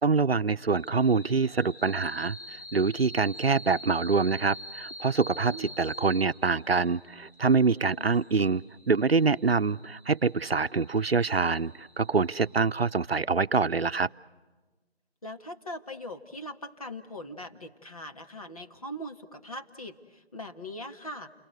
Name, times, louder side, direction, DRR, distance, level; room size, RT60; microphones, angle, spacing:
voice 1, 0.0-14.1, right 4 dB, 70° right, 14 dB, 0.8 m, -25 dB
sound 1, 0.7-13.1, left 1 dB, 60° left, 5.0 m, -46 dB
voice 2, 5.4-5.7 8.0-8.2 15.2-21.3, equal, 35° left, 4 dB, 1.8 m, -41 dB
29.0 x 23.0 x 7.9 m, 1.2 s
figure-of-eight pair, 170°, 31 cm